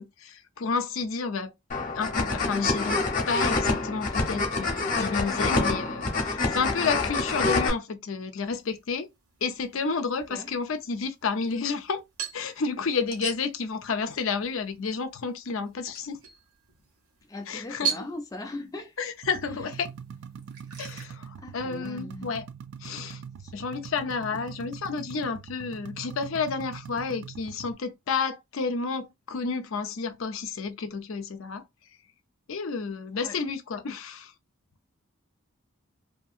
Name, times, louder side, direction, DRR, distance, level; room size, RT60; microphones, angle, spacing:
voice 1, 0.0-1.5 1.9-3.0 3.3-9.1 9.4-12.0 12.3-16.2 17.5-18.0 19.0-19.9 20.8-22.5 22.8-23.2 23.5-31.6 32.5-34.3, left 5 dB, 70° left, 0.5 m, -31 dB
sound 1, 1.7-7.7, left 3 dB, 40° left, 0.8 m, -27 dB
sound 2, 8.4-21.0, right 6 dB, 90° right, 1.2 m, -41 dB
voice 2, 17.3-18.9 21.4-22.3 23.4-23.5 33.1-33.4, left 2 dB, 15° left, 0.4 m, -39 dB
sound 3, 19.2-27.7, right 7 dB, 60° right, 0.3 m, -43 dB
2.7 x 2.7 x 2.4 m
head